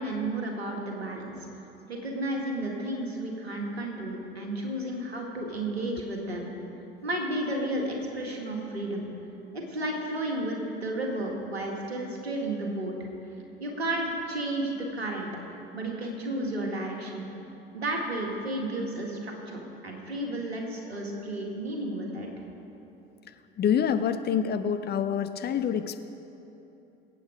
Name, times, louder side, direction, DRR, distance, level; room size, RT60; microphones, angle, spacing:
voice 1, 0.0-1.4 1.9-6.5 7.0-9.1 9.5-13.0 13.6-15.3 15.7-17.2 17.7-22.3, right 1 dB, 85° right, 1 dB, 1.8 m, -32 dB
voice 2, 23.6-26.0, left 8 dB, 30° left, 9 dB, 0.7 m, -26 dB
21.0 x 8.6 x 5.0 m, 3.0 s
figure-of-eight pair, 65°, 31 cm